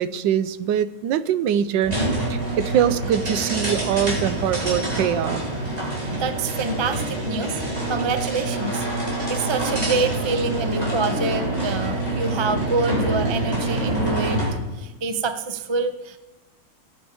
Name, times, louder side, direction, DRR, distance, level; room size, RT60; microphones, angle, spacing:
voice 1, 0.0-1.9 2.3-5.4, right 9 dB, 90° right, 15 dB, 1.4 m, -23 dB
sound 1, 1.8-14.6, right 2 dB, 20° right, 3.6 m, -26 dB
voice 2, 6.1-7.6 7.9-8.8 9.3-14.4 14.8-16.2, right 3 dB, 40° right, 9 dB, 0.4 m, -26 dB
17.0 x 8.1 x 4.9 m, 1.1 s
omnidirectional pair, 1.9 m